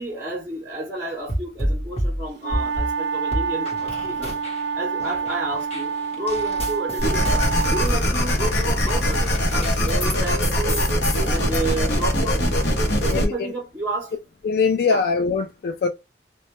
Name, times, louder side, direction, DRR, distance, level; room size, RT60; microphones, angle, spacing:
voice 1, 0.0-4.4 4.7-10.9 11.2-12.5 12.9-14.1 14.8-15.0, right 2 dB, 15° right, 0.6 m, -31 dB
sound 1, 1.3-2.9 3.3-4.7 5.0-10.2 10.4-11.6, equal, 35° left, 0.9 m, -29 dB
sound 2, 2.4-7.9, right 5 dB, 85° right, 0.3 m, -27 dB
sound 3, 7.0-13.3, equal, 80° left, 0.8 m, -22 dB
voice 2, 13.1-13.5 14.4-15.9, left 5 dB, 60° left, 0.3 m, -22 dB
2.1 x 2.1 x 2.8 m
head